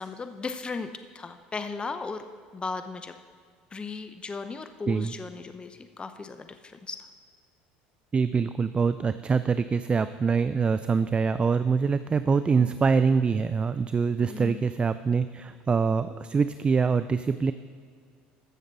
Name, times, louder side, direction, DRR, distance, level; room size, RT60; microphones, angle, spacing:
voice 1, 0.0-2.2 2.5-3.2 3.7-7.0 12.5-12.7 14.2-14.7, left 4 dB, 25° left, 9 dB, 0.6 m, -36 dB
voice 2, 8.1-17.5, right 5 dB, 25° right, 13 dB, 0.3 m, -24 dB
15.0 x 6.6 x 4.0 m, 2.1 s
hypercardioid pair, 80°, 4 cm